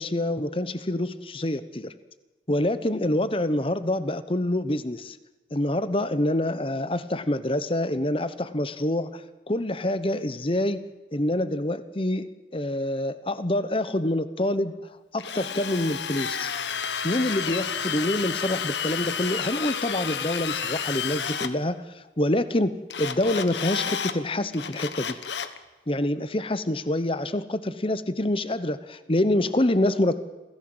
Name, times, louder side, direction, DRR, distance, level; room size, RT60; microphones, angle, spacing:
voice 1, 0.0-1.9 2.5-5.2 5.5-10.8 11.1-14.8 15.1-16.5 17.0-21.8 22.2-25.2 25.9-30.1, left 1 dB, 30° left, 13 dB, 1.0 m, -26 dB
Drill, 15.2-21.5 22.9-24.2 24.5-25.6, left 7 dB, 75° left, 1.3 m, -31 dB
27.5 x 16.0 x 7.9 m, 1.2 s
head